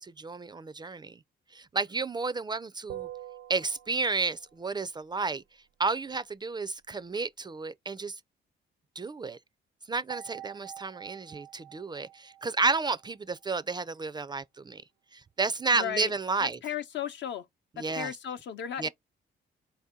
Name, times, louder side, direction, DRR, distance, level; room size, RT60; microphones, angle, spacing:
voice 1, 0.0-1.2 1.5-3.1 3.5-5.4 5.8-8.2 9.0-9.4 9.9-14.8 15.1-16.6 17.8-18.1 18.8-18.9, right 3 dB, 20° right, 0.3 m, -31 dB
sound 1, 2.9-4.4 10.1-13.4, right 13 dB, 85° right, 0.6 m, -46 dB
voice 2, 15.7-16.1 16.4-17.5 17.8-18.9, left 9 dB, 65° left, 0.7 m, -35 dB
4.3 x 2.7 x 3.6 m
cardioid pair, 90°, 20 cm